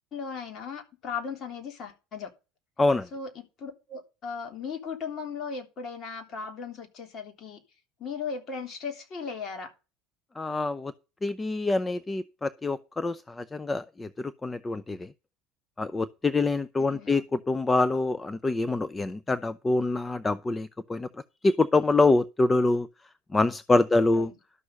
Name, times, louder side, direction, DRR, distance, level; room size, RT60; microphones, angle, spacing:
voice 1, 0.1-2.3 3.1-7.6 8.0-9.7 16.9-17.2 23.9-24.4, left 5 dB, 45° left, 3.3 m, -37 dB
voice 2, 10.4-10.9 11.2-15.1 15.8-21.1 21.4-22.9 23.3-24.3, left 2 dB, 20° left, 0.6 m, -25 dB
12.5 x 6.2 x 5.3 m
hypercardioid pair, 75°, 0 cm